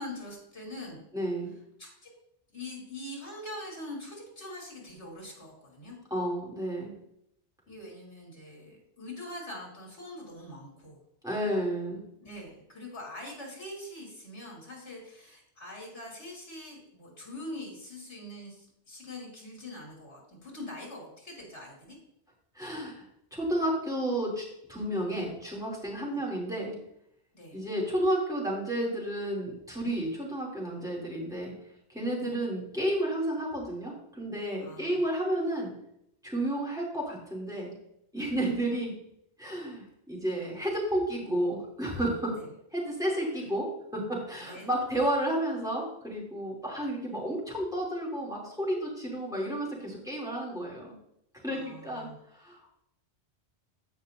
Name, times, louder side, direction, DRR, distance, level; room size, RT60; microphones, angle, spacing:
voice 1, 0.0-1.0 1.8-2.1 2.5-5.9 7.7-11.0 12.2-22.0 26.1-26.2 27.3-27.6 32.2-32.3 34.6-35.0 42.3-42.5 44.4-44.7 51.5-52.2, left 1 dB, 85° left, -2 dB, 3.4 m, -43 dB
voice 2, 1.1-1.5 6.1-6.9 11.2-12.0 22.5-23.1 23.3-26.7 27.5-31.5 31.9-35.7 36.2-37.7 38.1-38.9 39.4-42.3 42.7-43.7 43.9-50.9 51.4-52.7, right 1 dB, 5° right, -4 dB, 2.8 m, -31 dB
15.5 x 5.3 x 2.6 m, 0.77 s
omnidirectional pair, 1.1 m